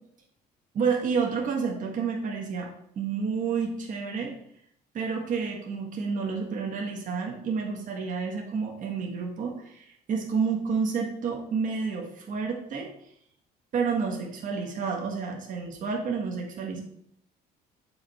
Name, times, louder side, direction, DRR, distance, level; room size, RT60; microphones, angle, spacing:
voice 1, 0.7-2.7 2.9-4.3 4.9-12.9 13.7-16.8, right 5 dB, 50° right, 0 dB, 1.5 m, -30 dB
7.7 x 5.1 x 4.3 m, 0.69 s
cardioid pair, 110°, 17 cm